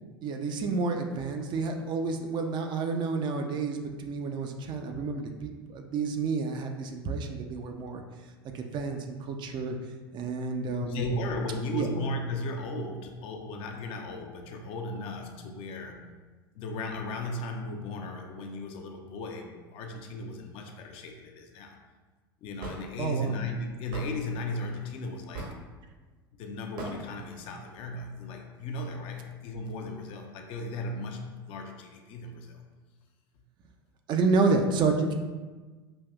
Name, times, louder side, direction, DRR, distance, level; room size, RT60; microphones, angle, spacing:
voice 1, 0.2-8.0 8.5-9.8 10.1-11.1 11.7-11.9 23.0-23.4 34.1-35.1, right 4 dB, 35° right, 4 dB, 0.4 m, -29 dB
voice 2, 10.8-16.0 16.5-21.8 22.4-25.5 26.4-32.6, left 1 dB, 45° left, 3 dB, 0.5 m, -36 dB
Hammer / Wood, 22.6-22.8 23.9-24.1 25.3-25.6 26.8-27.0, right 3 dB, 60° right, 1.1 m, -37 dB
5.2 x 2.6 x 2.3 m, 1.3 s
figure-of-eight pair, 75°, 13 cm